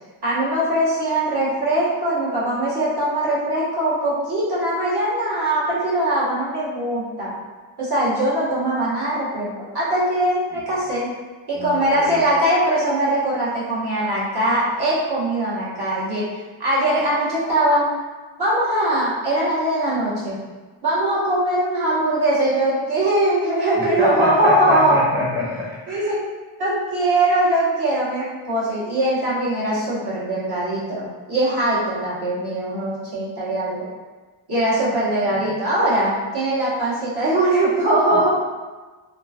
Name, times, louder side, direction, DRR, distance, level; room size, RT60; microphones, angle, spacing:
voice 1, 0.2-7.4 7.8-9.5 9.7-11.1 11.5-16.3 16.6-17.9 18.4-20.4 20.8-25.0 25.9-26.2 26.6-33.8 34.5-38.3, right 1 dB, 50° right, -9 dB, 1.3 m, -21 dB
voice 2, 11.5-12.3 23.8-26.1 35.3-35.5 38.1-38.3, left 2 dB, 5° right, -6 dB, 0.5 m, -28 dB
2.9 x 2.5 x 2.4 m, 1.3 s
cardioid pair, 50°, 49 cm